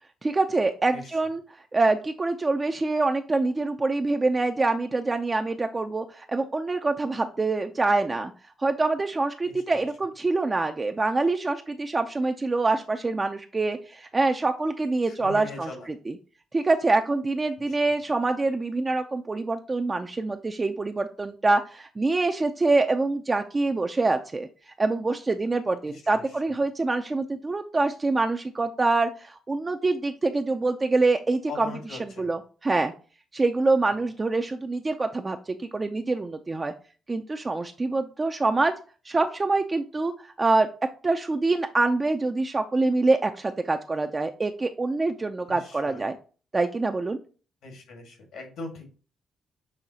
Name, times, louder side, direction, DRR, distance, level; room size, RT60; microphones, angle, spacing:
voice 1, 0.2-1.4 1.7-8.3 8.6-16.2 16.5-24.5 24.8-31.7 32.0-32.9 33.3-36.7 37.1-38.7 39.1-40.7 41.0-46.2 46.5-47.2, right 3 dB, 25° right, 5 dB, 0.4 m, -25 dB
voice 2, 15.0-15.9 17.7-17.8 25.8-26.2 31.5-32.3 45.5-46.0 47.6-48.9, left 3 dB, 75° left, 3 dB, 1.6 m, -40 dB
6.3 x 2.9 x 2.8 m, 0.38 s
cardioid pair, 90°, 0 cm